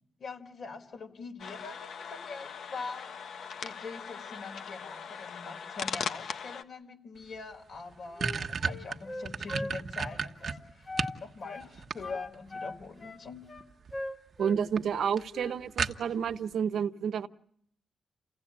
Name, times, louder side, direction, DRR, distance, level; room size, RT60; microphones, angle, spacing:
voice 1, 0.2-13.4, left 4 dB, 55° left, 5 dB, 3.9 m, -43 dB
sound 1, 1.4-6.6, left 6 dB, 75° left, 1.2 m, -40 dB
sound 2, 7.3-7.4 7.7-11.2 11.6-12.5 13.6-14.0 14.3-14.4 14.8-14.9 15.2-15.3 15.8-16.3, right 5 dB, 55° right, 1.2 m, -33 dB
Wind instrument woodwind instrument, 8.2-11.2 11.4-11.7 12.0-14.6 14.9-15.6, left 2 dB, 30° left, 2.1 m, -41 dB
voice 2, 14.4-17.3, right 7 dB, 75° right, 11 dB, 0.9 m, -30 dB
29.0 x 16.5 x 8.7 m, 0.71 s
wide cardioid pair, 125°, 0 cm